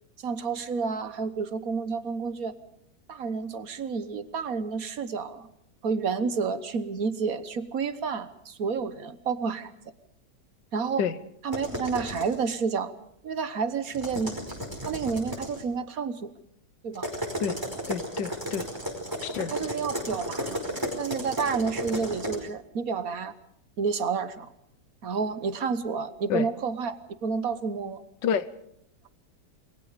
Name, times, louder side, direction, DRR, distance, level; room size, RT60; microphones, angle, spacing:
voice 1, 0.2-2.5 3.1-5.5 5.8-9.7 10.7-11.0 11.4-12.9 13.2-14.3 14.8-16.3 16.8-17.1 19.5-20.6 21.0-23.3 23.8-24.5 25.0-28.0, right 5 dB, 55° right, 12 dB, 1.5 m, -30 dB
sound 1, 11.5-12.4 13.9-15.6 16.9-22.4, equal, 10° right, 5.0 m, -34 dB
voice 2, 17.9-18.6 19.2-19.5 26.3-26.5 28.2-28.5, left 8 dB, 80° left, 14 dB, 1.7 m, -28 dB
28.5 x 21.5 x 5.1 m, 0.72 s
omnidirectional pair, 1.9 m